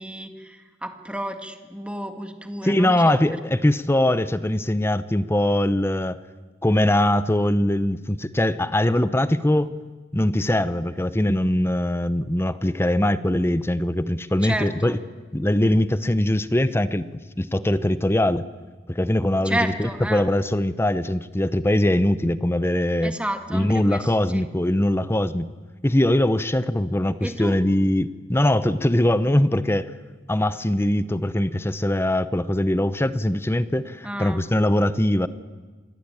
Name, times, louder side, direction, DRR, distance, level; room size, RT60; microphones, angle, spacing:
voice 1, 0.0-3.2 14.4-15.0 19.5-20.2 23.0-24.4 27.2-27.6 34.0-34.4, right 1 dB, 5° right, 6 dB, 2.0 m, -31 dB
voice 2, 2.6-6.2 6.6-9.7 10.1-15.0 15.3-17.1 17.4-18.4 18.9-23.1 23.5-25.5 25.8-29.9 30.3-35.3, left 1 dB, 15° left, 14 dB, 0.8 m, -22 dB
26.5 x 20.5 x 8.9 m, 1.3 s
head